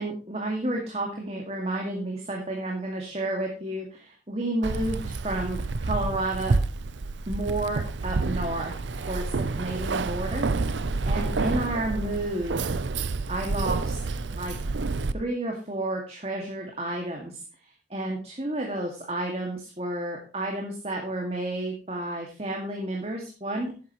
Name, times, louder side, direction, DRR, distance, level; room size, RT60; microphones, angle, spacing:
voice 1, 0.0-6.6 7.3-8.8 9.1-10.5 11.0-12.8 13.3-14.0 14.3-14.6 15.1-17.4 17.9-23.8, right 1 dB, 35° right, 1 dB, 2.2 m, -31 dB
Keys jangling, 4.6-15.1, right 3 dB, 90° right, 0.6 m, -29 dB
12.5 x 10.0 x 3.1 m, 0.35 s
head